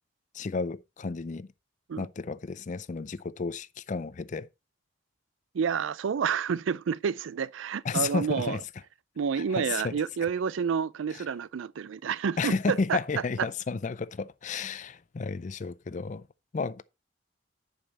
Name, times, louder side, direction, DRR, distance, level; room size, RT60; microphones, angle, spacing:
voice 1, 0.3-1.5 2.0-4.5 7.8-8.6 9.4-10.0 11.1-11.2 12.4-16.3 16.5-16.8, left 4 dB, 40° left, 0.4 m, -32 dB
voice 2, 5.5-8.6 9.2-13.0, right 6 dB, 90° right, 0.4 m, -29 dB
10.5 x 5.4 x 4.1 m
head